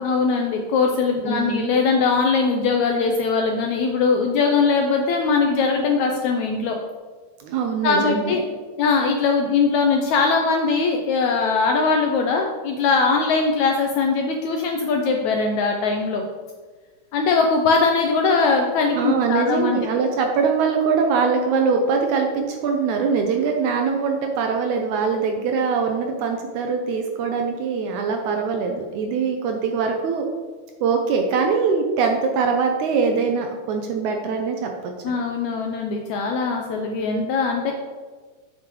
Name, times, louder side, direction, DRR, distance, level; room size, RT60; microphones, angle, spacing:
voice 1, 0.0-6.8 7.8-8.4 8.8-16.2 17.1-19.8 35.0-37.7, left 4 dB, 80° left, 2 dB, 1.7 m, -21 dB
voice 2, 1.2-1.7 7.4-8.4 18.9-30.3 30.8-34.9, right 5 dB, 80° right, 3 dB, 1.9 m, -22 dB
7.8 x 7.6 x 3.1 m, 1.4 s
omnidirectional pair, 3.9 m